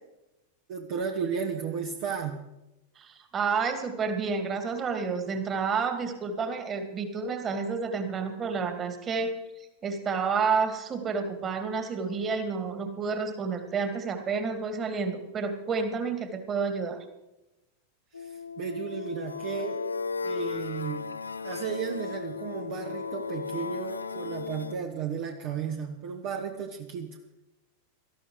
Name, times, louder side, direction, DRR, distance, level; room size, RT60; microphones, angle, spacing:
voice 1, 0.7-2.4 18.2-19.8 20.2-21.1 21.4-27.2, right 6 dB, 50° right, 3 dB, 1.4 m, -34 dB
voice 2, 3.0-9.3 9.8-17.0, right 5 dB, 25° right, 8 dB, 2.4 m, -30 dB
sound 1, 18.1-24.7, left 5 dB, 75° left, 0.5 m, -36 dB
18.5 x 13.5 x 4.9 m, 0.95 s
figure-of-eight pair, 90°, 0 cm